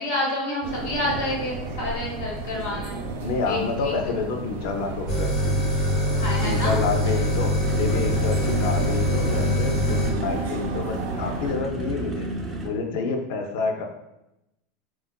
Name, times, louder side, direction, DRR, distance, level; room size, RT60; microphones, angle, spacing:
voice 1, 0.0-3.0 3.4-3.9 4.2-4.3 6.0-6.8, left 1 dB, 90° left, -3 dB, 1.1 m, -29 dB
sound 1, 0.6-11.5, right 3 dB, 90° right, 0.4 m, -33 dB
voice 2, 3.2-5.3 6.4-12.3 12.6-13.9, left 4 dB, 60° left, 3 dB, 0.4 m, -28 dB
sound 2, 5.1-10.1, left 1 dB, 45° left, 0.8 m, -24 dB
sound 3, 7.6-12.7, right 2 dB, 20° right, 0.3 m, -31 dB
3.6 x 2.3 x 2.3 m, 0.89 s
supercardioid pair, 170°, 0 cm